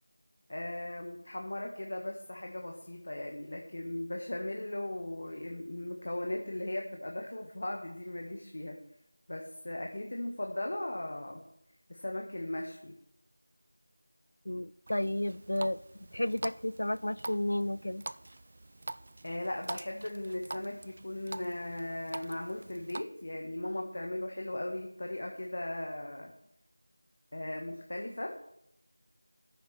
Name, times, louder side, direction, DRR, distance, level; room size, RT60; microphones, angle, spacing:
voice 1, 0.5-8.8 9.3-11.4 11.9-13.0 19.2-26.3 27.3-28.3, left 1 dB, 50° left, 2 dB, 1.3 m, -38 dB
voice 2, 14.5-15.8 16.1-18.0, left 1 dB, 70° left, 19 dB, 0.5 m, -32 dB
Water tap faucet, 14.9-23.0, right 2 dB, 35° right, 0.3 m, -45 dB
11.0 x 9.3 x 4.7 m, 0.77 s
figure-of-eight pair, 175°, 0 cm